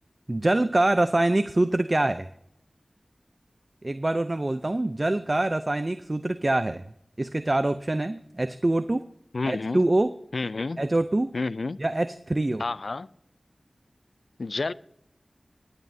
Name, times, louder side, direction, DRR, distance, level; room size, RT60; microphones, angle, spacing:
voice 1, 0.3-2.3 3.8-6.8 7.2-9.1 9.5-10.1 10.8-11.4 11.8-12.6, right 2 dB, 40° right, 0.5 m, -25 dB
voice 2, 9.3-9.9 10.3-10.8 11.3-11.8 12.6-13.1 14.4-14.7, left 3 dB, 75° left, 0.3 m, -29 dB
20.0 x 9.4 x 2.7 m
wide cardioid pair, 45°, 0 cm